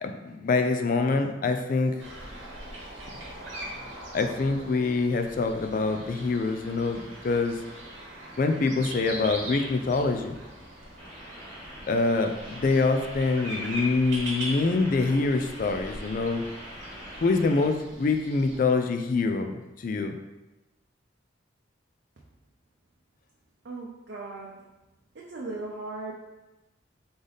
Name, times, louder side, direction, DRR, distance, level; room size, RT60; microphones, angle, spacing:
voice 1, 0.0-1.9 4.1-7.6 8.4-10.3 11.9-16.4 17.2-20.2, left 3 dB, 45° left, 6 dB, 0.3 m, -25 dB
sound 1, 2.0-18.6, right 1 dB, 80° right, 1.0 m, -41 dB
sound 2, 11.0-17.7, equal, 10° left, 1.1 m, -44 dB
voice 2, 23.6-24.7 25.1-26.1, right 2 dB, 60° right, -4 dB, 0.6 m, -37 dB
3.9 x 3.3 x 3.9 m, 1.0 s
head